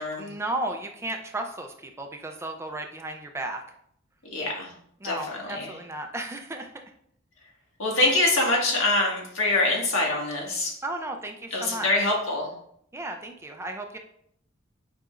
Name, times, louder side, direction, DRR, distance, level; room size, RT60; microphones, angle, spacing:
voice 1, 0.2-3.6 5.0-6.7 10.8-12.1 12.9-14.0, right 2 dB, 15° right, 4 dB, 0.5 m, -34 dB
voice 2, 4.3-4.7 5.0-5.7 7.8-10.7 11.5-12.5, left 2 dB, 75° left, -1 dB, 1.8 m, -24 dB
9.4 x 5.0 x 2.5 m, 0.70 s
head